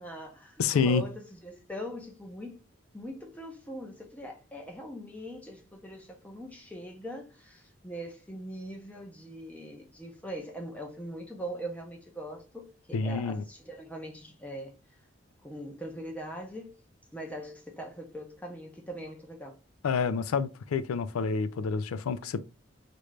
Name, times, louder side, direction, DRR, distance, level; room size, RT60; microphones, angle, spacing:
voice 1, 0.0-2.6 2.9-14.8 15.4-16.8 17.1-19.6, right 1 dB, 5° left, 0.5 m, -41 dB
voice 2, 0.6-1.1 12.9-13.4 19.8-22.4, left 5 dB, 90° left, 0.4 m, -28 dB
3.1 x 2.5 x 3.2 m
head